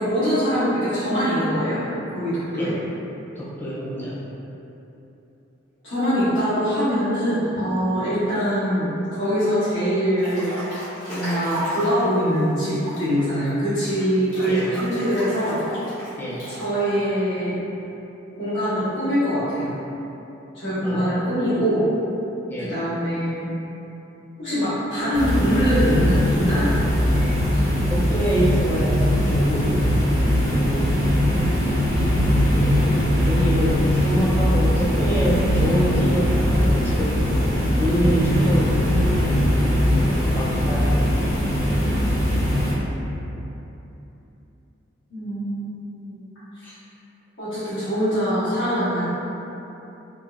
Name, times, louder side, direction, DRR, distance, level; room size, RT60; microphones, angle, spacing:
voice 1, 0.0-1.8 2.1-2.7 5.8-10.5 11.1-15.6 16.5-17.5 18.4-19.7 20.5-21.8 22.6-23.5 24.4-26.7 45.1-46.2 46.5-46.6 47.4-49.0, equal, 70° left, -16 dB, 0.9 m, -23 dB
voice 2, 3.4-4.2 14.5-14.7 16.2-16.4 20.8-21.3 22.5-22.7 27.9-31.2 32.5-37.2 37.7-39.6 39.9-41.3 46.6-46.7, right 1 dB, 10° left, -7 dB, 0.3 m, -27 dB
Breathing / Bathtub (filling or washing) / Splash splatter, 10.2-12.1 12.6-16.6, equal, 90° left, 1.2 m, -34 dB
sound 1, 25.1-42.7, equal, 35° left, 0.9 m, -20 dB
2.9 x 2.6 x 2.3 m, 3.0 s
head